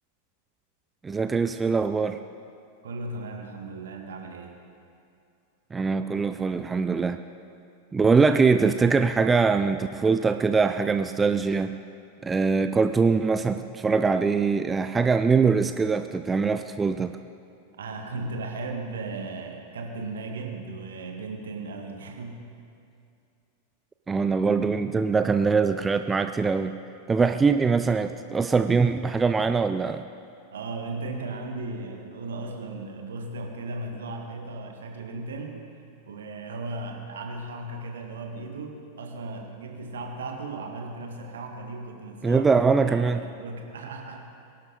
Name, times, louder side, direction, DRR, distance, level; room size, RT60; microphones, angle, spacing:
voice 1, 1.0-2.2 5.7-7.2 7.9-11.8 12.2-17.2 24.1-26.8 27.1-30.0 42.2-43.2, right 4 dB, 15° right, 9 dB, 0.4 m, -23 dB
voice 2, 2.8-4.5 17.8-22.4 30.5-35.6 36.1-42.4 42.8-44.3, right 2 dB, 65° right, 2 dB, 1.8 m, -36 dB
22.5 x 12.0 x 4.1 m, 2.5 s
figure-of-eight pair, 90°, 0 cm